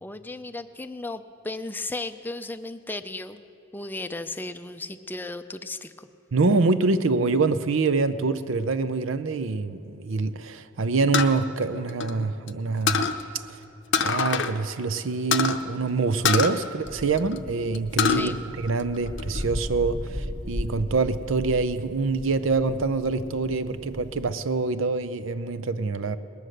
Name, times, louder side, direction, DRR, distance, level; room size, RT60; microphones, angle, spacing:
voice 1, 0.0-3.4 3.7-6.1 18.1-18.5, left 2 dB, 10° left, 9 dB, 0.4 m, -35 dB
voice 2, 6.3-13.0 14.0-26.2, right 3 dB, 80° right, 13 dB, 0.6 m, -25 dB
sound 1, 11.1-12.5 12.9-13.2 13.9-14.5 14.8-14.9 15.3-15.6 16.2-17.4 17.7-18.2 18.7-19.4, left 6 dB, 60° left, 0.6 m, -24 dB
sound 2, 16.8-24.3, equal, 40° right, 1.5 m, -37 dB
20.0 x 9.3 x 6.5 m, 2.8 s
head